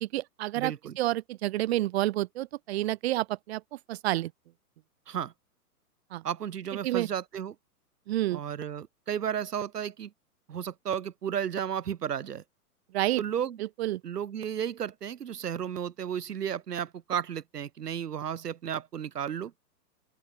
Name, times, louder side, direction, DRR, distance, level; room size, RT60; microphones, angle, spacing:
voice 1, 0.0-3.6 3.9-4.3 6.1-6.2 6.8-7.1 8.1-8.4 12.9-13.2 13.6-14.0, right 16 dB, 45° right, 0.8 m, -29 dB
voice 2, 0.5-1.0 5.1-5.3 6.2-7.5 8.3-10.1 10.5-12.4 13.2-13.6 14.0-19.5, right 9 dB, 85° right, 0.6 m, -33 dB
open air
figure-of-eight pair, 110°, 46 cm